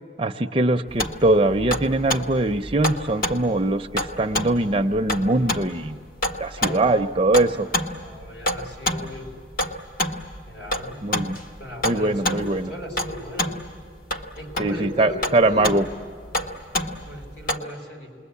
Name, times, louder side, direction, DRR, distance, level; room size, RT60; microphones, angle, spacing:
voice 1, 0.2-6.0 6.4-7.7 11.0-11.4 11.8-12.7 14.6-15.8, right 2 dB, 30° right, 6 dB, 0.6 m, -22 dB
sound 1, 0.9-17.6, left 1 dB, 50° left, 1.4 m, -28 dB
voice 2, 6.5-7.0 8.0-9.3 10.4-11.1 11.6-13.6 14.3-15.8 16.8-18.2, left 1 dB, 75° left, 0 dB, 5.0 m, -37 dB
29.0 x 21.5 x 8.4 m, 2.2 s
head